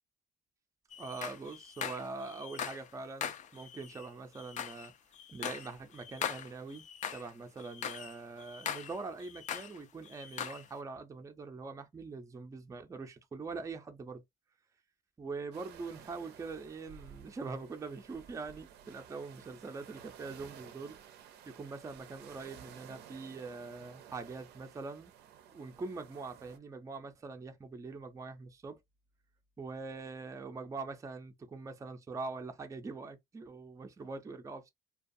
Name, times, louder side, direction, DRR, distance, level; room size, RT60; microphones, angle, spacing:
sound 1, 0.9-2.9 3.2-7.3 7.6-9.8 10.0-10.7, left 8 dB, 45° left, 0.4 m, -41 dB
voice 1, 1.0-4.9 5.3-14.2 15.2-21.0 21.5-25.1 25.5-28.8 29.6-34.7, right 4 dB, 20° right, 0.5 m, -43 dB
sound 2, 15.5-26.6, right 9 dB, 75° right, 0.5 m, -54 dB
2.4 x 2.3 x 2.5 m
cardioid pair, 110°, 17 cm